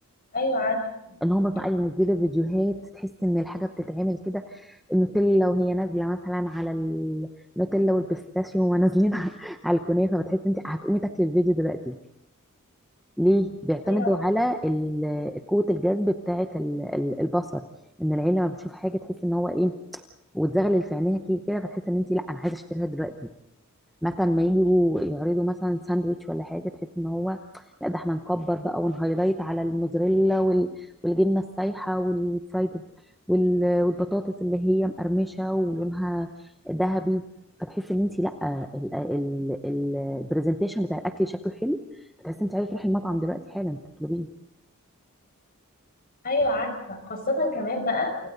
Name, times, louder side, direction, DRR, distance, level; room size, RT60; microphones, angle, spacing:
voice 1, 0.3-0.8 1.1-1.2 13.9-14.1 46.2-48.3, left 2 dB, 40° left, 5 dB, 5.7 m, -26 dB
voice 2, 1.2-7.3 7.6-12.0 13.2-17.6 18.0-20.0 20.3-23.3 24.0-32.8 33.3-37.3 37.6-44.3, equal, ahead, 5 dB, 0.8 m, -25 dB
29.0 x 28.5 x 4.0 m, 0.81 s
head